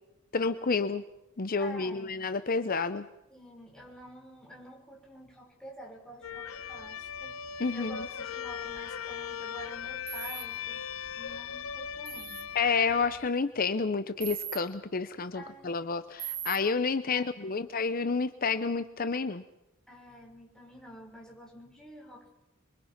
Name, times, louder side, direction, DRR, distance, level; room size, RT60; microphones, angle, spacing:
voice 1, 0.3-1.0 1.4-3.0 7.6-8.0 12.6-19.4, left 4 dB, 45° left, 11 dB, 0.7 m, -29 dB
voice 2, 1.6-2.1 3.3-7.4 7.7-10.8 11.2-12.4 15.3-15.9 16.9-17.5 19.9-22.4, equal, 5° left, -1 dB, 5.8 m, -49 dB
sound 1, 6.2-13.3, left 8 dB, 90° left, 0.9 m, -39 dB
sound 2, 10.1-10.4 12.1-12.4 14.2-14.6 16.2-16.6, right 12 dB, 45° right, 1.9 m, -38 dB
27.5 x 23.5 x 5.9 m, 0.92 s
head